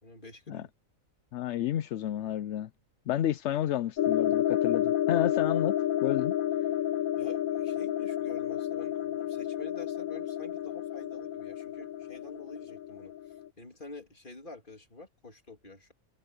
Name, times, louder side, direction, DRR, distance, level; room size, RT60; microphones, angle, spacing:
voice 1, 0.0-0.7 7.2-15.9, left 2 dB, 35° left, 3.2 m, -48 dB
voice 2, 1.3-2.7 3.1-5.7 6.0-6.3, left 11 dB, 65° left, 0.8 m, -30 dB
sound 1, 4.0-13.5, left 12 dB, 80° left, 1.1 m, -30 dB
omnidirectional pair, 1.5 m